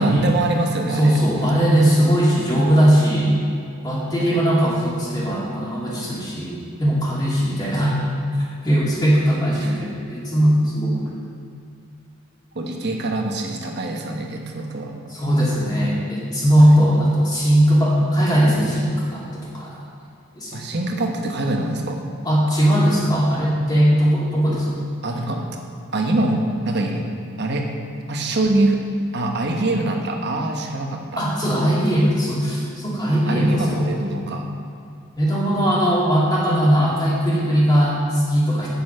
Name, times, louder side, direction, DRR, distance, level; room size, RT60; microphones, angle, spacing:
voice 1, 0.0-1.2 4.2-4.4 9.6-9.8 12.5-15.0 20.5-22.0 25.0-25.5 25.9-27.1 27.4-27.7 28.1-28.8 29.1-31.2 33.3-34.5, right 2 dB, 50° right, 2 dB, 1.1 m, -24 dB
voice 2, 1.0-3.4 3.8-8.0 8.6-11.1 15.1-19.8 20.4-20.6 22.2-24.8 31.2-34.1 35.2-38.7, equal, 20° left, -6 dB, 2.2 m, -19 dB
7.0 x 7.0 x 7.6 m, 2.4 s
head